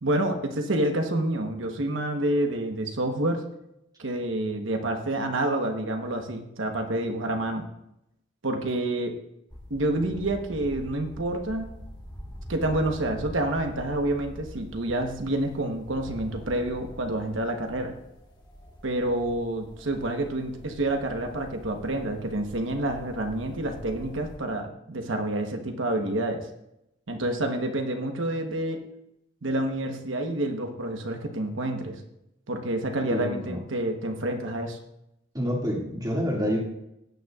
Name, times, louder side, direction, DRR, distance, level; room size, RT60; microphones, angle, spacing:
voice 1, 0.0-3.4 4.0-7.6 8.4-9.1 9.7-11.7 12.5-17.9 18.8-26.5 27.1-28.8 29.4-32.0 32.5-34.8, right 1 dB, 70° right, 4 dB, 1.1 m, -28 dB
sound 1, 9.5-24.4, equal, 20° left, 1.5 m, -44 dB
voice 2, 33.1-33.6 35.3-36.6, equal, 20° right, -3 dB, 2.1 m, -27 dB
16.0 x 9.3 x 2.4 m, 0.83 s
head